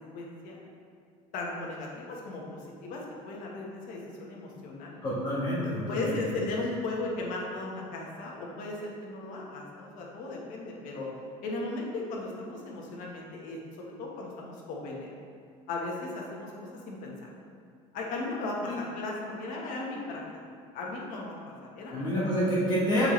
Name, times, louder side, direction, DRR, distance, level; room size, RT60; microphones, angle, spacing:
voice 1, 0.1-0.6 1.3-5.0 5.9-11.1 11.4-15.2 15.7-17.3 17.9-20.2 20.7-22.3, left 2 dB, 60° left, -2 dB, 1.3 m, -36 dB
voice 2, 5.0-6.2 18.6-18.8 21.9-23.1, equal, 30° left, -8 dB, 1.3 m, -28 dB
7.4 x 4.1 x 3.2 m, 2.2 s
cardioid pair, 135°, 15 cm